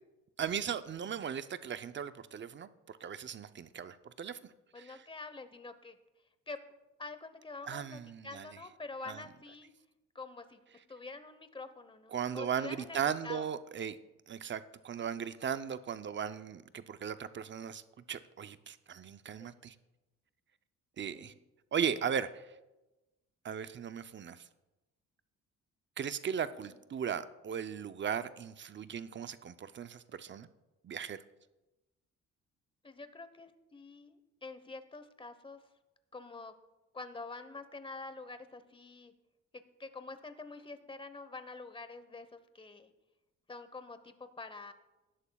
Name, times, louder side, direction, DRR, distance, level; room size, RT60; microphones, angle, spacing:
voice 1, 0.4-5.1 7.7-8.5 9.1-9.2 12.1-14.0 14.3-17.8 18.1-19.7 21.0-21.3 21.7-22.5 23.4-24.4 26.0-30.5 30.8-31.2, right 8 dB, 40° right, 12 dB, 0.6 m, -37 dB
voice 2, 4.7-6.0 6.5-6.6 7.0-9.7 10.1-10.6 10.9-13.5 19.4-19.6 21.1-21.4 26.6-26.7 32.8-34.2 34.4-35.6 36.1-36.5 36.9-39.1 39.5-42.9 43.5-44.7, left 3 dB, 15° left, 11 dB, 1.0 m, -46 dB
18.5 x 11.0 x 2.3 m, 1.1 s
cardioid pair, 90°, 30 cm